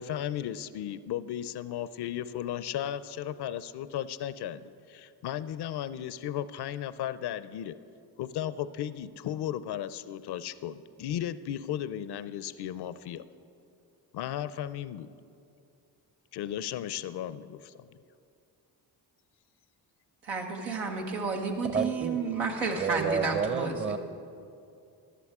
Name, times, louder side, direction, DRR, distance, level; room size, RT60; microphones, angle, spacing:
voice 1, 0.0-7.8 8.2-13.2 14.1-15.1 16.3-17.9, left 11 dB, 60° left, 15 dB, 0.6 m, -35 dB
voice 2, 20.2-23.9, right 4 dB, 90° right, 0 dB, 1.4 m, -31 dB
voice 3, 21.7-22.2 22.8-24.0, right 6 dB, 25° right, 10 dB, 0.8 m, -30 dB
14.5 x 11.5 x 3.7 m, 2.5 s
supercardioid pair, 50°, 45 cm